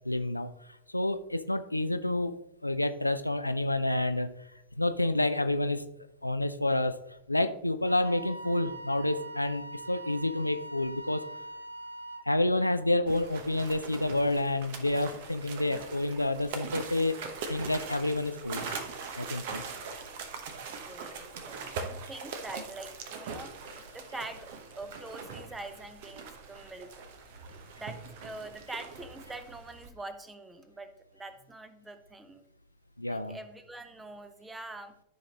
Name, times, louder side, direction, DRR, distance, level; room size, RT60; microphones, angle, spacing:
voice 1, 0.0-0.5 0.9-4.3 4.8-5.9 6.2-7.0 7.3-11.3 12.3-17.2 17.5-18.6 19.2-19.6 33.0-33.4, left 2 dB, 85° left, 10 dB, 0.5 m, -29 dB
Wind instrument woodwind instrument, 7.8-12.3, right 2 dB, 75° right, 0.7 m, -43 dB
sound 1, 13.1-29.9, right 5 dB, 50° right, 1.0 m, -42 dB
voice 2, 20.7-23.6 23.9-26.9 27.5-32.5 33.1-34.9, right 2 dB, 10° right, 11 dB, 0.8 m, -44 dB
13.0 x 5.2 x 2.9 m, 0.83 s
figure-of-eight pair, 90°, 0 cm